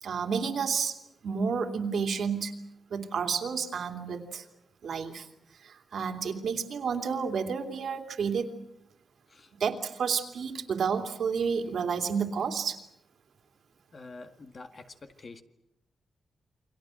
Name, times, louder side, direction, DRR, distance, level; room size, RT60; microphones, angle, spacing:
voice 1, 0.0-1.0 1.2-2.5 2.9-4.4 4.8-5.3 5.6-8.5 9.6-12.8, right 6 dB, 65° right, 5 dB, 2.8 m, -30 dB
voice 2, 13.9-15.4, left 3 dB, 40° left, 7 dB, 1.8 m, -47 dB
29.0 x 25.0 x 6.4 m, 0.81 s
wide cardioid pair, 145°, 0 cm